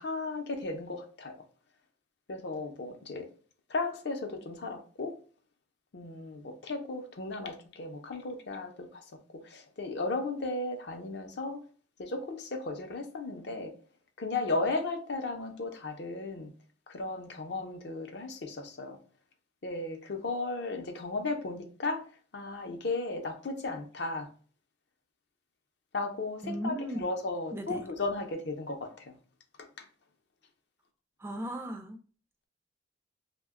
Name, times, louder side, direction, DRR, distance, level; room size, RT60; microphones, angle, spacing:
voice 1, 0.0-1.4 2.3-3.3 3.7-5.2 5.9-9.0 9.3-11.6 12.0-13.7 14.2-16.5 16.9-19.0 19.6-22.0 22.3-24.3 25.9-29.1 29.6-29.9, left 3 dB, 60° left, 0.5 m, -35 dB
voice 2, 26.4-27.1 27.5-27.9 31.2-32.0, equal, 15° right, 0.3 m, -36 dB
2.8 x 2.1 x 3.5 m
head